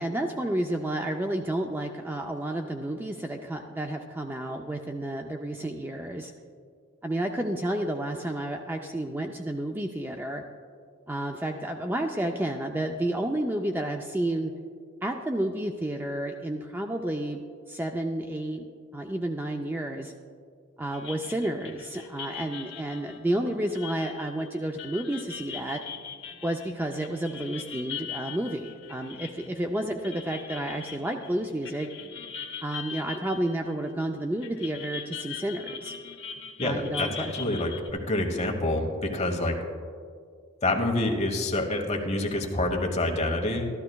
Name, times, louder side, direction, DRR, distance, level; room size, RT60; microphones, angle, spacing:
voice 1, 0.0-6.3 7.0-10.4 11.1-14.5 15.0-18.7 18.9-20.1 20.8-25.8 26.4-31.9 32.6-35.9 36.6-37.3, right 1 dB, 10° right, 3 dB, 0.3 m, -31 dB
sound 1, 20.9-34.1 34.4-37.9, left 7 dB, 60° left, 0.8 m, -41 dB
voice 2, 36.6-39.6 40.6-43.7, left 2 dB, 35° left, 2 dB, 1.1 m, -27 dB
13.0 x 13.0 x 2.3 m, 2.1 s
head